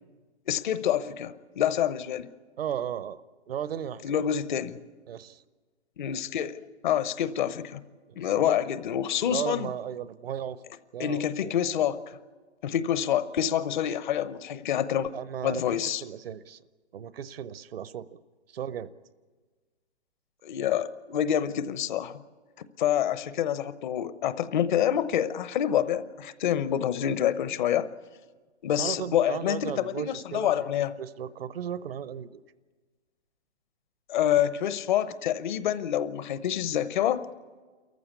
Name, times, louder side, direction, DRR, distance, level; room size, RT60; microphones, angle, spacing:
voice 1, 0.5-2.3 4.0-4.8 6.0-7.8 8.2-9.7 11.0-12.0 12.6-15.1 15.4-16.0 20.4-22.2 22.8-27.9 28.6-30.9 34.1-37.3, left 10 dB, 45° left, 14 dB, 0.9 m, -27 dB
voice 2, 2.6-3.2 3.5-4.2 5.1-5.4 8.1-8.6 9.3-10.6 10.9-11.5 15.1-16.6 16.9-18.2 18.5-18.9 28.8-30.5 31.0-32.4, right 9 dB, 60° right, 17 dB, 0.8 m, -35 dB
28.5 x 14.5 x 8.3 m, 1.4 s
figure-of-eight pair, 130°, 33 cm